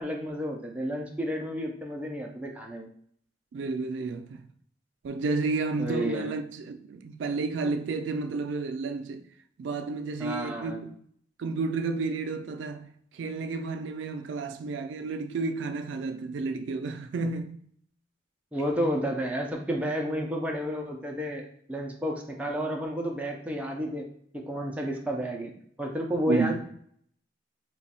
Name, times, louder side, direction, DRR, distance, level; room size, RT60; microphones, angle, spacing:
voice 1, 0.0-2.9 5.8-6.3 10.2-10.8 18.5-21.4 21.7-24.1 24.3-25.5 25.8-26.6, equal, 5° right, 0.4 m, -31 dB
voice 2, 3.5-4.4 5.0-9.3 9.6-10.9 11.4-12.9 13.1-17.6 26.3-26.6, right 4 dB, 80° right, 0.3 m, -31 dB
3.0 x 2.3 x 4.1 m
head